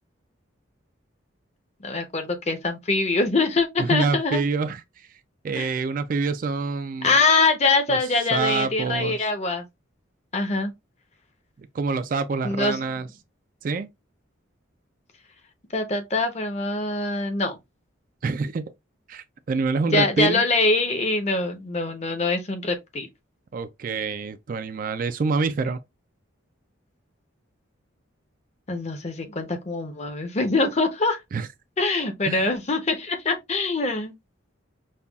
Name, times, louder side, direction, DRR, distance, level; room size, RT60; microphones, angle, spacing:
voice 1, 1.8-4.4 5.6-5.7 7.0-9.7 10.3-10.7 12.4-12.8 15.7-17.6 19.9-23.1 28.7-31.2 31.8-34.1, left 3 dB, 35° left, 0.7 m, -24 dB
voice 2, 3.8-5.1 5.4-7.1 7.9-8.0 8.3-9.2 11.6-13.1 13.6-13.9 18.2-18.7 19.1-20.4 23.5-25.8 31.3-31.5 32.3-32.5, right 4 dB, 45° right, 0.3 m, -26 dB
5.4 x 2.2 x 2.3 m
head